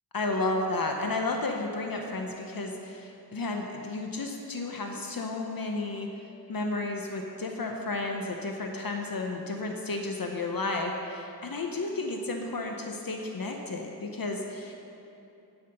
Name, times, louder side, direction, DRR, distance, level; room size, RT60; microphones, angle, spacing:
voice 1, 0.1-6.1 6.5-14.7, left 2 dB, 60° left, 2 dB, 0.8 m, -32 dB
11.5 x 5.8 x 5.6 m, 2.9 s
wide cardioid pair, 65°, 40 cm